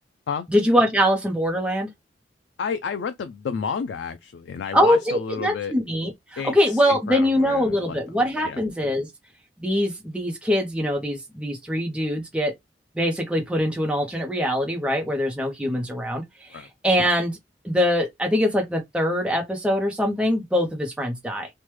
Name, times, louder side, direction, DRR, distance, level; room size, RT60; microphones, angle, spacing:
voice 1, 0.5-1.9 4.7-9.1 9.6-12.5 13.0-16.2 16.5-17.4 17.6-21.5, equal, 5° right, 0.6 m, -23 dB
voice 2, 2.6-5.7 6.4-8.0 8.4-8.6 16.5-16.7, left 6 dB, 85° left, 0.3 m, -31 dB
3.2 x 2.1 x 3.1 m
head